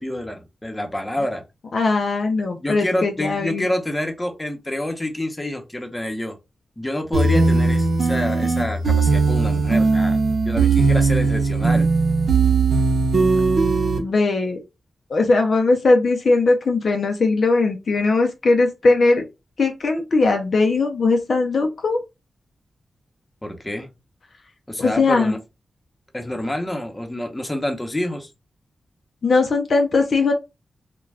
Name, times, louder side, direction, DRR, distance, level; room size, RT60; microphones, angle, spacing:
voice 1, 0.0-1.4 2.6-6.3 6.8-10.2 10.4-11.9 23.4-23.9 24.7-25.4 26.1-28.3, left 1 dB, 20° left, 4 dB, 0.8 m, -27 dB
voice 2, 1.7-3.7 14.0-14.6 15.1-19.3 19.6-22.0 24.8-25.3 29.2-30.3, left 3 dB, 65° left, 4 dB, 0.5 m, -19 dB
sound 1, 7.1-14.0, right 4 dB, 70° right, 0.7 m, -18 dB
2.4 x 2.2 x 3.2 m, 0.24 s
cardioid pair, 55°, 0 cm